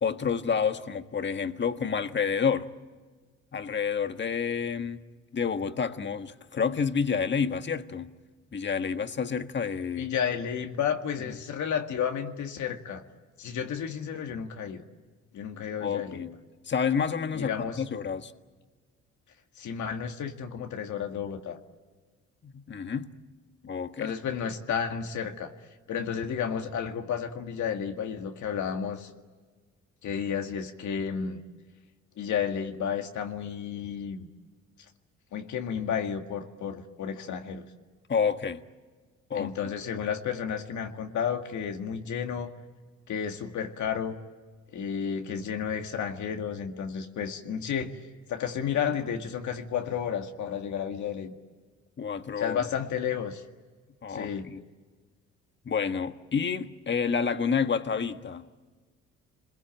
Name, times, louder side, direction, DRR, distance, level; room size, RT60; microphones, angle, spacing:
voice 1, 0.0-2.7 3.5-5.0 5.3-8.1 8.5-10.1 15.8-16.4 16.7-18.3 22.4-23.1 23.6-24.1 38.1-38.6 39.3-39.7 52.0-52.6 54.0-54.6 55.6-58.5, left 6 dB, 35° left, 1.5 m, -29 dB
voice 2, 10.0-13.0 13.4-14.8 15.3-16.3 17.3-17.8 19.6-21.6 24.0-25.5 25.9-29.1 30.0-31.4 32.2-34.3 35.3-37.7 39.3-42.5 43.1-44.2 44.7-48.0 48.3-51.3 52.4-53.4 54.1-54.5, left 7 dB, 70° left, 2.0 m, -32 dB
29.0 x 22.0 x 9.0 m
cardioid pair, 90°, 30 cm